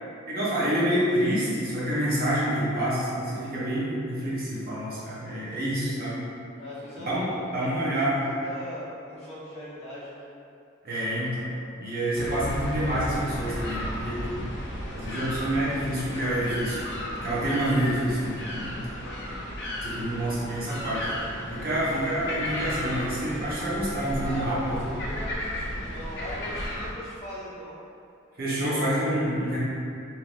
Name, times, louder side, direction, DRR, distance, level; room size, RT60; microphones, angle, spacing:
voice 1, 0.3-6.2 7.0-7.3 7.5-8.2 10.8-11.5 11.8-14.4 14.9-18.8 19.8-24.9 28.4-29.6, right 1 dB, 50° right, -7 dB, 0.8 m, -28 dB
voice 2, 5.1-5.7 6.6-8.0 8.3-10.3 18.9-19.3 24.2-27.8, equal, 35° left, -10 dB, 1.0 m, -40 dB
sound 1, 12.1-26.9, equal, 60° left, 0.6 m, -34 dB
3.3 x 2.8 x 2.5 m, 2.5 s
head